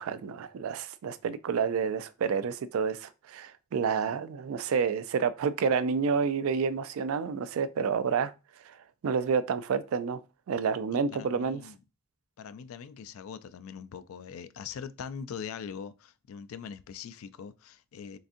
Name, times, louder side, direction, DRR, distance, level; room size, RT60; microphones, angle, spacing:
voice 1, 0.0-8.3 8.7-8.8 9.0-10.2 10.5-11.6, right 6 dB, 80° right, 0.3 m, -29 dB
voice 2, 10.9-11.8 12.4-18.2, left 7 dB, 85° left, 0.4 m, -42 dB
3.9 x 3.5 x 2.5 m
head